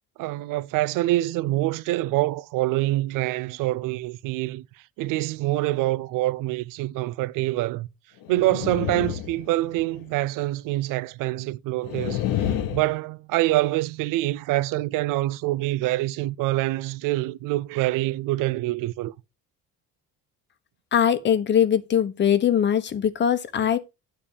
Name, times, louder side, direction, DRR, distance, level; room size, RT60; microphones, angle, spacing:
voice 1, 0.2-4.6 5.0-7.9 8.3-12.2 12.7-19.1, right 17 dB, 75° right, 0.5 m, -25 dB
sound 1, 8.2-10.0 11.8-12.8, left 11 dB, 85° left, 1.1 m, -28 dB
voice 2, 20.9-23.8, left 8 dB, 35° left, 0.9 m, -21 dB
9.6 x 3.5 x 6.6 m
cardioid pair, 150°, 32 cm